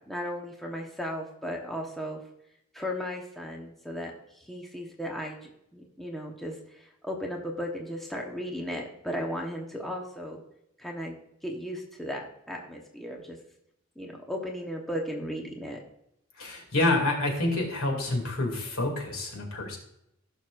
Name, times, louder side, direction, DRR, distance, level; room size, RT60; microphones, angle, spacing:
voice 1, 0.0-2.2 2.7-10.4 10.8-11.2 11.4-13.4 14.0-15.8, equal, ahead, -1 dB, 1.0 m, -36 dB
voice 2, 16.4-19.8, left 2 dB, 80° left, 1 dB, 2.5 m, -28 dB
16.0 x 6.2 x 2.5 m, 0.80 s
head